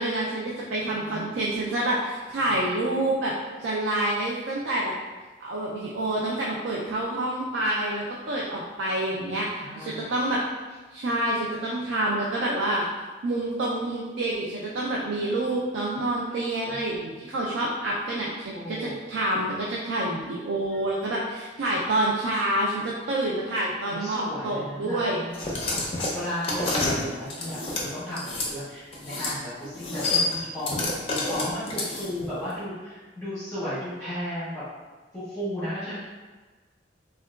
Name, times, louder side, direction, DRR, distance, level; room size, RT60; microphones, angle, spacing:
voice 1, 0.0-3.3 3.6-4.9 5.4-10.4 10.9-12.8 13.2-25.2, right 1 dB, 80° right, -4 dB, 0.4 m, -27 dB
voice 2, 0.8-1.4 2.4-2.6 9.6-10.1 16.7-17.2 18.5-18.9 20.7-20.8 23.9-25.6 26.1-34.6 35.1-36.0, equal, 10° left, -15 dB, 1.0 m, -35 dB
sound 1, 25.3-28.5 28.9-29.4 29.6-32.3, left 2 dB, 30° left, 0.5 m, -29 dB
3.6 x 2.3 x 2.2 m, 1.3 s
head